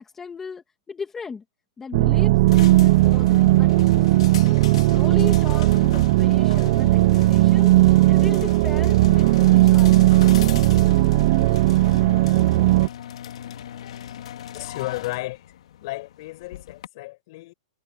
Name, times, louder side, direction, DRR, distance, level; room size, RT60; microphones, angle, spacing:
voice 1, 0.0-1.4 1.8-2.3 2.8-4.1 4.4-7.7 8.1-10.2, left 5 dB, 10° left, 2.4 m, -36 dB
sound 1, 1.9-12.9, right 17 dB, 40° right, 0.5 m, -17 dB
sound 2, 2.5-16.9, left 10 dB, 65° left, 3.0 m, -39 dB
voice 2, 14.5-17.5, left 20 dB, 40° left, 5.3 m, -34 dB
hypercardioid pair, 165°, 3 cm